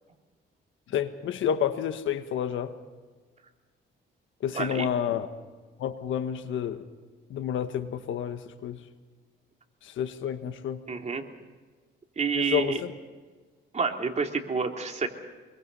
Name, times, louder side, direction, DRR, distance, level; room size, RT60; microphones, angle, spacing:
voice 1, 0.9-2.8 4.4-5.3 5.8-6.8 7.3-8.8 9.8-10.8 12.3-12.9, left 9 dB, 75° left, 9 dB, 1.5 m, -29 dB
voice 2, 4.5-4.9 10.9-11.2 12.2-12.8 13.7-15.1, right 5 dB, 35° right, 2 dB, 3.3 m, -28 dB
26.0 x 23.5 x 5.6 m, 1.4 s
cardioid pair, 90°, 20 cm